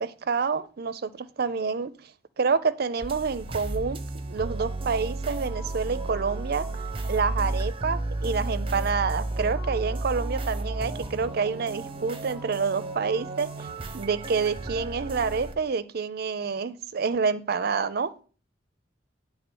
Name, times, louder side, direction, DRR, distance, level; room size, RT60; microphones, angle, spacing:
voice 1, 0.0-1.9 2.4-4.0 4.3-6.7 7.0-13.7 13.9-18.1, right 5 dB, 60° right, 13 dB, 0.5 m, -28 dB
sound 1, 3.0-15.5, right 2 dB, 30° right, 0.8 m, -33 dB
8.8 x 3.6 x 6.1 m, 0.39 s
head